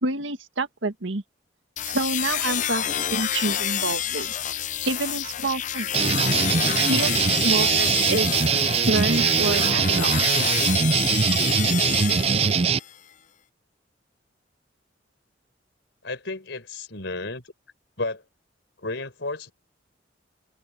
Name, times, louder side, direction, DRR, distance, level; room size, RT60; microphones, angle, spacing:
voice 1, 0.0-1.2 1.9-4.4 4.8-6.1 6.9-8.3 8.9-10.2, right 2 dB, 85° right, 1.8 m, -28 dB
sound 1, 1.8-12.9, left 10 dB, 40° left, 0.6 m, -28 dB
sound 2, 5.9-12.8, right 6 dB, 30° right, 0.4 m, -22 dB
voice 2, 16.0-17.5 18.0-18.2 18.8-19.5, left 2 dB, 70° left, 4.6 m, -32 dB
open air
head